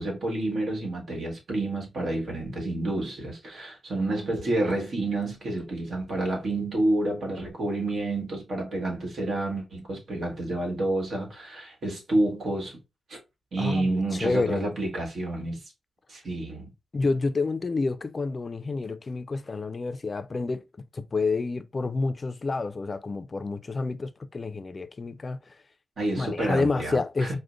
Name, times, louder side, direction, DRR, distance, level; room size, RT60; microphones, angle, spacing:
voice 1, 0.0-12.8 13.1-13.2 13.5-15.6 16.1-16.7 26.0-27.4, right 2 dB, 70° right, 1.4 m, -29 dB
voice 2, 13.6-14.6 16.9-20.6 20.9-25.6 26.2-27.4, left 3 dB, 40° left, 0.3 m, -29 dB
4.9 x 2.1 x 2.4 m
cardioid pair, 80°, 0 cm